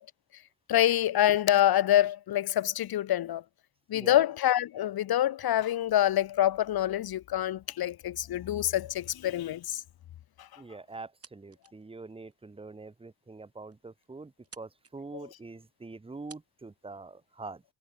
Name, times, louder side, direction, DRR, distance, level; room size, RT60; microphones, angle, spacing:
voice 1, 0.7-3.4 3.9-9.8 10.4-10.6, left 12 dB, 70° left, 0.8 m, -26 dB
voice 2, 3.9-4.2 10.6-17.6, right 3 dB, 15° right, 1.0 m, -44 dB
sound 1, 10.9-11.8 12.3-12.4 13.0-13.1 13.4-13.5 13.7-14.1 14.4-14.9 15.9-16.0 16.3-16.5, right 5 dB, 35° right, 4.1 m, -53 dB
wide cardioid pair, 125°, 38 cm